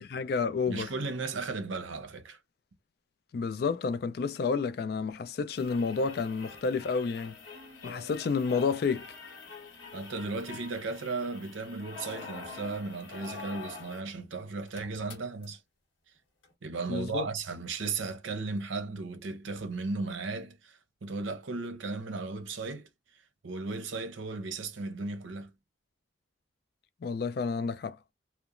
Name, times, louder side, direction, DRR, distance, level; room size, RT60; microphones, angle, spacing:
voice 1, 0.0-0.9 3.3-7.3 7.8-9.1 16.9-17.3 27.0-28.0, left 5 dB, 50° left, 0.3 m, -30 dB
voice 2, 0.7-2.4 9.9-15.6 16.6-22.9 23.4-25.5, right 3 dB, 80° right, 0.6 m, -35 dB
sound 1, 5.6-14.1 14.4-14.5 14.7-15.5 16.4-16.5, left 4 dB, 80° left, 1.0 m, -46 dB
2.9 x 2.1 x 2.4 m
head